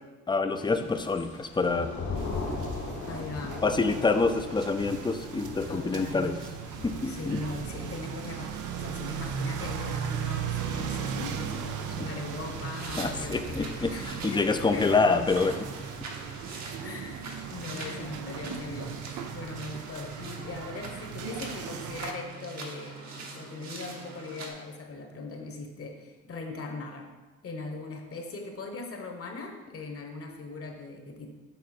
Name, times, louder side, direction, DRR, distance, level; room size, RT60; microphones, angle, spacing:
voice 1, 0.3-1.9 3.6-6.4 6.8-7.4 13.0-15.6, left 4 dB, 15° left, 8 dB, 0.5 m, -26 dB
Thunder / Rain, 0.5-16.6, left 3 dB, 70° left, 1.4 m, -41 dB
sound 1, 2.2-22.1, right 8 dB, 80° right, 0.6 m, -38 dB
voice 2, 3.1-3.6 5.7-6.3 7.0-15.0 16.8-27.1 27.4-31.3, left 3 dB, 50° left, 3 dB, 1.2 m, -40 dB
sound 2, 12.5-24.5, right 4 dB, 65° right, 1.2 m, -43 dB
7.5 x 3.8 x 4.3 m, 1.3 s
cardioid pair, 90°, 30 cm